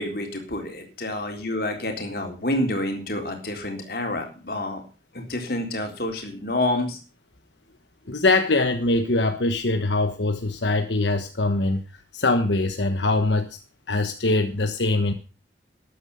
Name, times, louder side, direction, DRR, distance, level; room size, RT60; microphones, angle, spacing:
voice 1, 0.0-4.8 5.1-7.0, left 1 dB, 55° left, 3 dB, 3.8 m, -28 dB
voice 2, 8.1-13.6 13.9-15.1, left 2 dB, 85° left, 7 dB, 1.2 m, -23 dB
13.0 x 10.0 x 5.6 m, 0.35 s
head